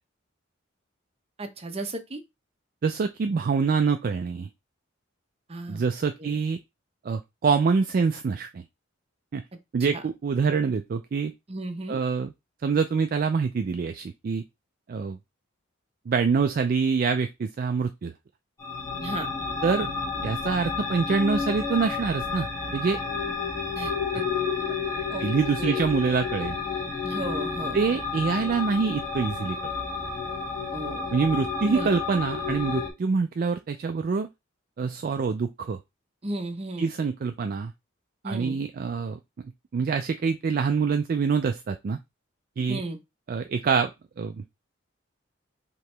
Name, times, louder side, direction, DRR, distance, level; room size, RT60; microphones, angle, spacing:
voice 1, 1.4-2.2 5.5-5.8 6.2-6.3 9.9-10.0 11.5-12.0 19.0-19.3 23.7-24.2 25.1-25.3 25.6-25.8 27.0-27.8 30.7-31.0 31.7-31.9 36.2-36.9 38.2-38.6 42.7-43.0, right 2 dB, 30° right, 0.7 m, -34 dB
voice 2, 2.8-4.5 5.7-6.6 7.0-8.6 9.3-9.4 9.7-11.3 11.9-12.3 12.6-14.4 14.9-15.2 16.1-18.1 19.6-19.9 20.2-23.0 25.2-26.6 27.7-29.7 31.1-34.3 34.8-35.8 36.8-37.7 38.2-39.2 39.7-42.0 42.6-42.8 43.3-43.9 44.2-44.4, right 5 dB, 45° right, 0.3 m, -25 dB
sound 1, 18.6-32.9, left 4 dB, 15° left, 1.4 m, -31 dB
4.7 x 2.9 x 3.3 m
head